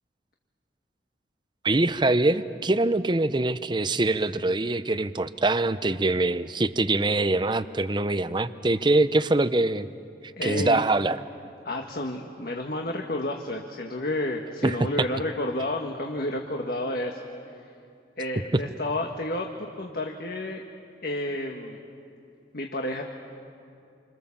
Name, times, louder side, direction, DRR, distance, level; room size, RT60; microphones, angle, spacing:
voice 1, 1.6-9.9 10.4-11.2 14.6-14.8, right 2 dB, 25° right, 13 dB, 0.7 m, -24 dB
voice 2, 10.4-10.8 11.6-17.7 18.2-20.6 21.0-21.8 22.5-23.0, left 1 dB, 55° left, 2 dB, 1.5 m, -31 dB
28.5 x 26.0 x 7.2 m, 2.6 s
head